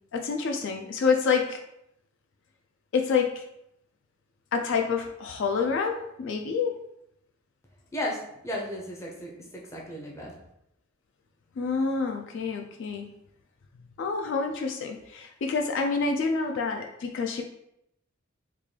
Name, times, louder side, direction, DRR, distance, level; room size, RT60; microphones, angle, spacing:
voice 1, 0.1-1.6 2.9-3.4 4.5-6.8 11.6-13.1 14.0-17.4, left 5 dB, 60° left, 4 dB, 0.3 m, -27 dB
voice 2, 8.4-10.3, equal, 15° left, -3 dB, 0.6 m, -34 dB
3.6 x 2.3 x 3.2 m, 0.79 s
head